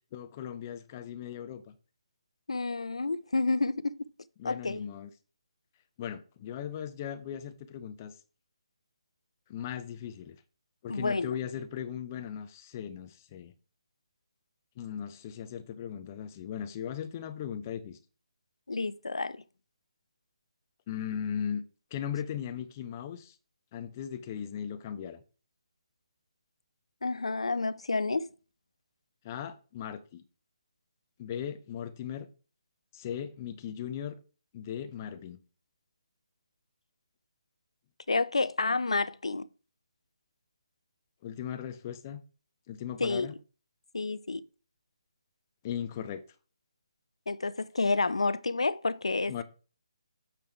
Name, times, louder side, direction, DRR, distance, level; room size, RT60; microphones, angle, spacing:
voice 1, 0.1-1.7 4.4-5.1 6.0-8.1 9.5-10.4 10.8-13.5 14.8-18.0 20.9-21.6 21.9-23.4 23.7-25.2 29.2-30.2 31.2-32.3 32.9-34.2 34.5-35.4 41.2-42.2 42.7-43.3 45.6-46.2 49.3-49.4, left 9 dB, 30° left, 0.7 m, -38 dB
voice 2, 2.5-4.0 4.4-4.8 10.9-11.3 18.7-19.4 27.0-28.3 38.1-39.5 43.0-43.3 43.9-44.4 47.3-49.4, left 3 dB, 70° left, 0.5 m, -29 dB
8.6 x 3.5 x 4.6 m
figure-of-eight pair, 145°, 3 cm